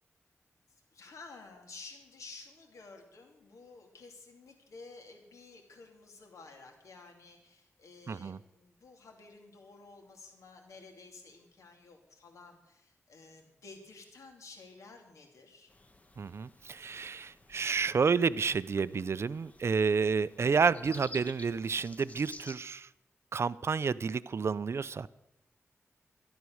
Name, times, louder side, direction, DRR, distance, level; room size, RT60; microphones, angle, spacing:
voice 1, 0.9-15.7, left 3 dB, 85° left, 3 dB, 2.9 m, -52 dB
voice 2, 8.1-8.4 16.2-22.9 23.3-25.1, right 5 dB, 55° right, 17 dB, 0.5 m, -30 dB
sound 1, 15.7-22.5, left 2 dB, 25° left, 1.4 m, -52 dB
12.5 x 12.0 x 6.4 m, 0.84 s
wide cardioid pair, 85°, 5 cm